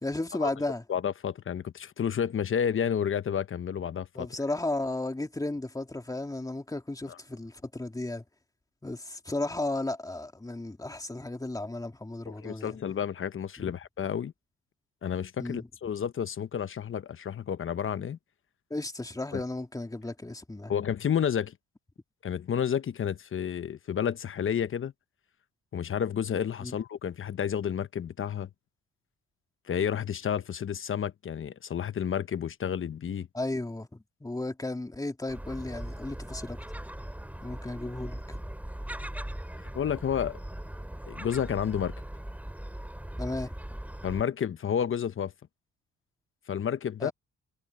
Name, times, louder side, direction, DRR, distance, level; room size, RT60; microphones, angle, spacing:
voice 1, 0.0-0.8 4.2-8.2 8.8-12.8 13.6-13.7 15.4-15.7 18.7-20.7 26.6-26.7 33.3-36.6 37.4-38.4 43.2-43.5 47.0-47.1, left 2 dB, 10° left, 2.4 m, -34 dB
voice 2, 0.9-4.3 7.1-7.2 12.3-14.3 15.0-18.2 19.3-19.4 20.7-21.5 22.2-24.9 25.7-28.5 29.7-33.3 39.7-40.4 41.1-41.9 44.0-45.3 46.5-47.1, left 8 dB, 45° left, 1.1 m, -30 dB
Gull seagull, 35.3-44.2, right 1 dB, 5° right, 4.3 m, -39 dB
cardioid pair, 90°, 30 cm